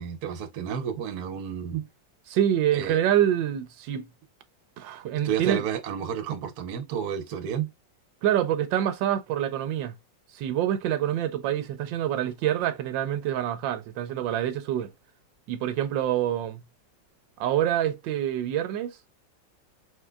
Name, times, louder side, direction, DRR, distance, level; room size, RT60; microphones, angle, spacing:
voice 1, 0.0-1.9 2.7-3.0 5.2-7.7, right 8 dB, 60° right, 1.2 m, -31 dB
voice 2, 2.3-4.1 4.8-5.6 8.2-9.9 10.3-14.9 15.5-16.6 17.4-19.0, right 11 dB, 85° right, 1.3 m, -26 dB
4.9 x 3.7 x 2.2 m
omnidirectional pair, 2.0 m